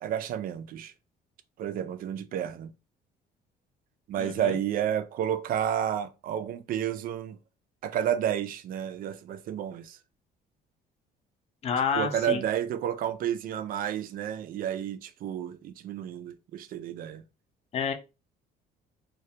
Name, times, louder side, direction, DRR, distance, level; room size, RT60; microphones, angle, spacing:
voice 1, 0.0-0.9 1.6-2.7 4.1-7.4 7.8-10.0 12.0-17.2, right 10 dB, 55° right, 0.4 m, -31 dB
voice 2, 4.2-4.6 11.6-12.4 17.7-17.9, left 6 dB, 40° left, 0.4 m, -29 dB
2.2 x 2.1 x 2.7 m
cardioid pair, 110°, 17 cm